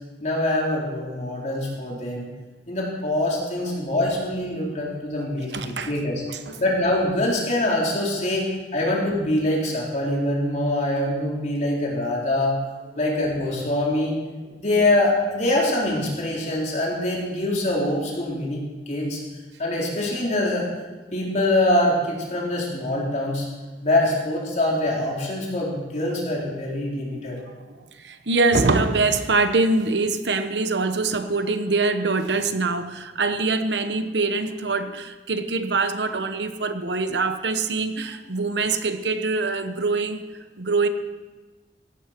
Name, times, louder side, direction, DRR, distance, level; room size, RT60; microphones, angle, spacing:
voice 1, 0.2-2.3 2.7-6.2 6.6-8.4 8.7-12.6 13.0-14.1 14.5-18.6 18.9-19.2 19.6-20.7 21.1-23.5 23.8-27.4, left 1 dB, 45° left, -3 dB, 4.2 m, -24 dB
voice 2, 5.2-5.9 6.3-6.6 26.1-26.2 26.7-26.8 27.7-40.2 40.6-40.9, right 3 dB, 75° right, 9 dB, 1.1 m, -24 dB
16.5 x 14.5 x 4.6 m, 1.3 s
head